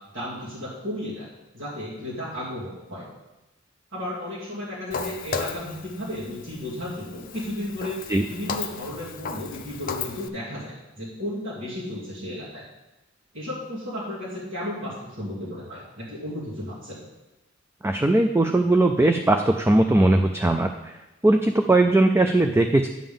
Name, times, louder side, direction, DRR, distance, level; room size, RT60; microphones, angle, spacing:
voice 1, 0.1-3.1 3.9-8.0 8.3-12.6 13.3-17.0, left 1 dB, 70° right, -8 dB, 2.6 m, -34 dB
Walk footsteps, 4.9-10.3, left 5 dB, 45° left, 0.5 m, -35 dB
voice 2, 17.8-21.0 21.2-22.9, right 2 dB, 10° right, 5 dB, 0.3 m, -19 dB
9.9 x 3.8 x 7.0 m, 1.0 s
head